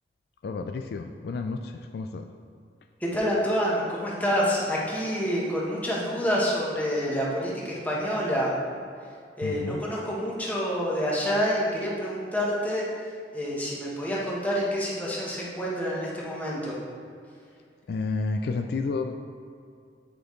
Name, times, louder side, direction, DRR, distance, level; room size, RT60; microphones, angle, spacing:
voice 1, 0.4-2.3 9.4-9.8 17.9-19.1, left 3 dB, 60° left, 5 dB, 0.3 m, -31 dB
voice 2, 3.0-8.5 9.4-12.9 13.3-16.7, equal, 10° left, -5 dB, 1.2 m, -27 dB
8.8 x 5.0 x 3.1 m, 2.4 s
head